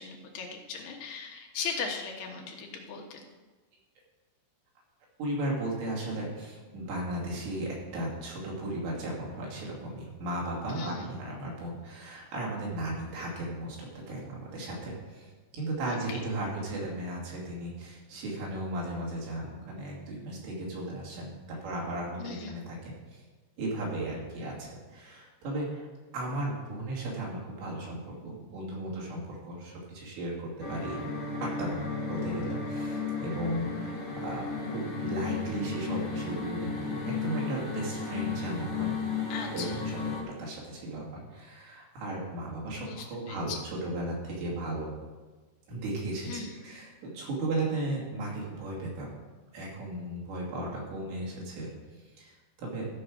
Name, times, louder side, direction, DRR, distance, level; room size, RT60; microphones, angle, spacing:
voice 1, 0.0-3.2 10.7-11.1 15.9-16.2 22.2-22.6 39.3-39.8 42.8-43.6 46.2-46.6, left 5 dB, 75° left, 1 dB, 3.0 m, -38 dB
voice 2, 5.2-23.2 23.6-25.9 26.1-31.0 31.4-31.8 32.1-38.9 39.5-44.9 45.7-49.1 49.5-52.9, right 1 dB, 80° right, -4 dB, 4.9 m, -36 dB
sound 1, 30.6-40.2, left 4 dB, 30° left, 1.6 m, -34 dB
14.0 x 5.5 x 6.3 m, 1.3 s
omnidirectional pair, 5.0 m